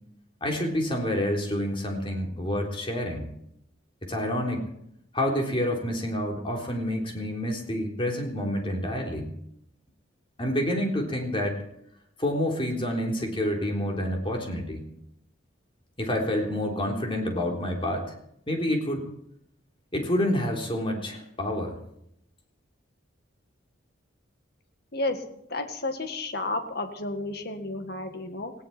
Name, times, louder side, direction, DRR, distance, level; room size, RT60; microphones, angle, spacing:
voice 1, 0.4-3.3 4.0-4.6 5.1-9.3 10.4-11.6 12.2-14.8 16.0-18.1 18.5-19.1 19.9-21.8, left 1 dB, 25° left, 1 dB, 3.7 m, -28 dB
voice 2, 24.9-28.5, left 2 dB, 50° left, 6 dB, 2.0 m, -32 dB
19.0 x 16.5 x 4.4 m, 0.75 s
head